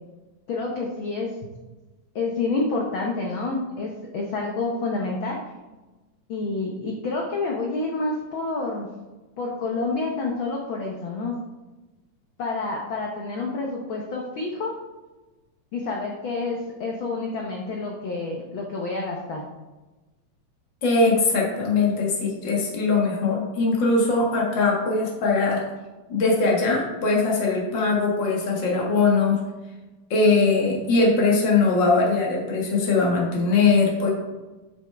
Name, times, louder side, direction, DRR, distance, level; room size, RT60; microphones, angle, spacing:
voice 1, 0.5-1.3 2.1-5.4 6.3-8.9 9.4-11.3 12.4-14.7 15.7-19.4, left 3 dB, 65° left, -1 dB, 1.2 m, -28 dB
voice 2, 20.8-25.6 26.1-29.4 30.1-34.1, left 3 dB, 45° left, -2 dB, 2.0 m, -21 dB
8.2 x 7.0 x 3.4 m, 1.1 s
omnidirectional pair, 3.4 m